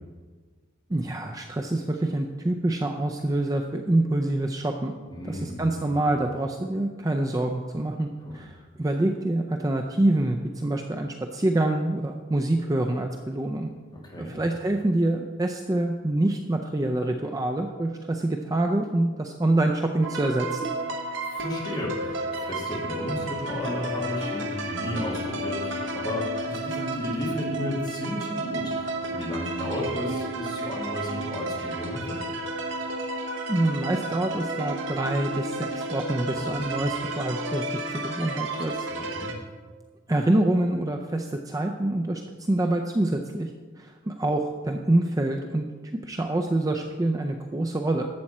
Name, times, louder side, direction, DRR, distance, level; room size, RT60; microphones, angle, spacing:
voice 1, 0.9-4.9 5.2-8.1 8.3-13.7 14.2-20.7 33.5-38.7 40.1-42.2 42.5-43.5 43.8-45.6 46.0-48.1, right 1 dB, 15° right, 4 dB, 0.4 m, -26 dB
voice 2, 5.1-6.0 8.2-8.4 13.9-14.3 21.2-32.2 36.3-36.6 38.7-39.3, left 1 dB, 20° left, -3 dB, 2.2 m, -34 dB
sound 1, 20.0-39.3, right 1 dB, 65° right, 1.1 m, -32 dB
12.0 x 7.7 x 4.2 m, 1.4 s
head